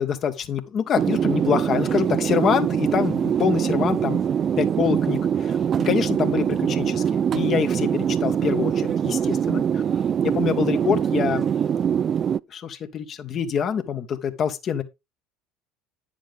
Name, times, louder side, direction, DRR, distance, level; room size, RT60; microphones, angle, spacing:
voice 1, 0.0-4.3 4.6-5.6 5.8-9.8 10.2-11.4 12.5-14.8, left 7 dB, 40° left, 1.6 m, -25 dB
sound 1, 1.0-12.4, right 8 dB, 40° right, 0.4 m, -23 dB
10.5 x 7.2 x 3.7 m
hypercardioid pair, 70°, 0 cm